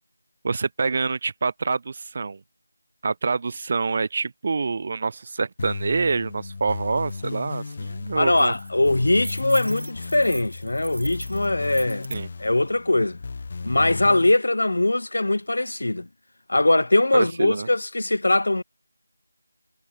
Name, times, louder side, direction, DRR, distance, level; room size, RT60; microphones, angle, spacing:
voice 1, 0.4-2.4 3.0-8.5 12.1-12.3 17.1-17.7, right 4 dB, 30° right, 2.1 m, -26 dB
sound 1, 5.6-14.3, left 4 dB, 30° left, 0.7 m, -34 dB
sound 2, 7.1-7.2 7.5-7.7 8.1-12.2, right 2 dB, 65° right, 2.9 m, -38 dB
voice 2, 8.2-12.1 12.4-13.2 13.6-16.1 16.5-18.6, left 2 dB, 65° left, 2.0 m, -21 dB
figure-of-eight pair, 175°, 0 cm